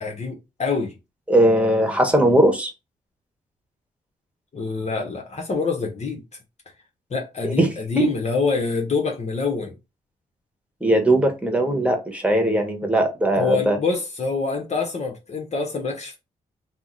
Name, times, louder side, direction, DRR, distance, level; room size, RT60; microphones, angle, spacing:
voice 1, 0.0-0.9 4.5-6.2 7.1-9.7 13.3-16.2, left 4 dB, 45° left, 0.8 m, -25 dB
voice 2, 1.3-2.7 7.4-7.7 7.9-8.1 10.8-13.8, right 1 dB, 10° right, 1.2 m, -19 dB
2.7 x 2.1 x 3.6 m
supercardioid pair, 55°, 15 cm